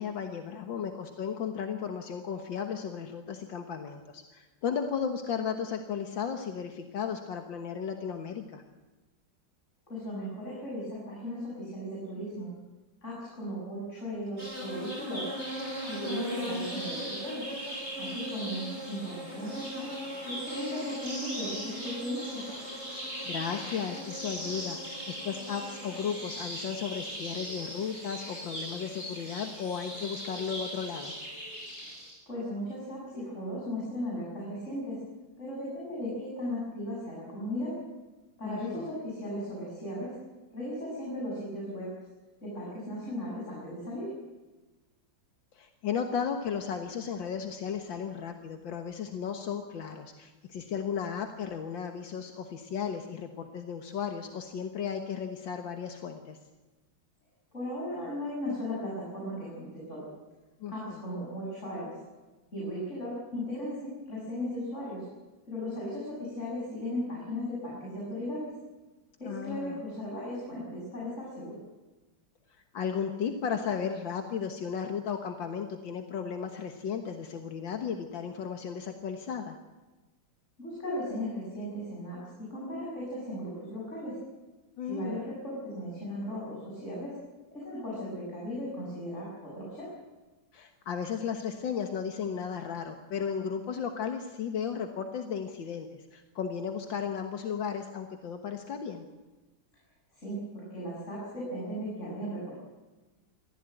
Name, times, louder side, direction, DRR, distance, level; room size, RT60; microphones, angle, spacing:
voice 1, 0.0-8.6 15.9-16.5 22.9-23.0 23.2-31.1 38.4-38.9 45.5-56.4 60.6-61.0 69.2-69.8 72.7-79.6 84.8-85.2 90.5-99.1, left 7 dB, 80° left, 5 dB, 2.1 m, -35 dB
voice 2, 9.9-12.5 13.0-15.3 15.9-17.4 18.0-19.9 20.2-22.4 32.3-35.0 35.4-37.8 38.4-40.1 40.5-41.9 42.4-44.1 57.5-60.1 60.7-61.9 62.5-65.0 65.5-68.5 69.2-71.6 80.6-84.2 84.9-87.1 87.5-89.9 100.1-102.5, equal, 35° left, -5 dB, 7.5 m, -36 dB
sound 1, 14.4-32.1, equal, 35° right, 6.6 m, -38 dB
24.0 x 15.0 x 9.1 m, 1.2 s
omnidirectional pair, 2.0 m